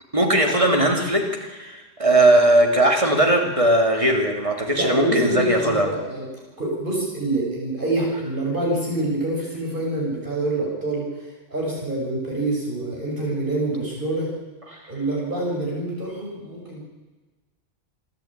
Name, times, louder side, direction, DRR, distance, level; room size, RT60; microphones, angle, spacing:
voice 1, 0.1-5.9 14.7-14.8, right 1 dB, 30° right, 2 dB, 2.7 m, -19 dB
voice 2, 4.7-6.3 6.6-14.3 14.9-16.8, right 2 dB, 50° right, -3 dB, 6.8 m, -26 dB
28.5 x 10.5 x 8.9 m, 1.2 s
omnidirectional pair, 1.2 m